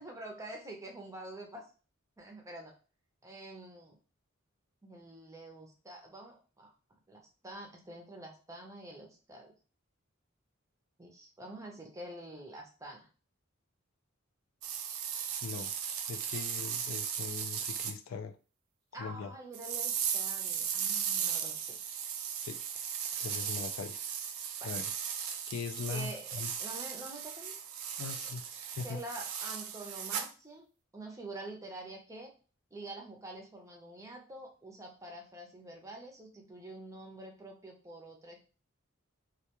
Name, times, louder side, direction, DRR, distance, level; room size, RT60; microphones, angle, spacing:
voice 1, 0.0-1.7 2.2-2.7 3.2-4.0 4.8-6.7 7.1-9.5 11.0-13.1 18.9-21.8 23.3-23.4 24.6-24.8 25.9-27.5 28.8-30.6 30.9-32.3 32.7-38.4, right 1 dB, 15° right, 1 dB, 0.5 m, -47 dB
sound 1, 14.6-17.9 19.5-30.3, right 8 dB, 90° right, 0.4 m, -37 dB
voice 2, 15.4-15.7 16.1-18.3 19.0-19.3 22.4-22.6 23.2-24.0 24.6-24.9 25.5-26.5 28.0-28.4 28.8-29.0, left 5 dB, 75° left, 9 dB, 0.3 m, -40 dB
2.3 x 2.2 x 2.9 m, 0.35 s
head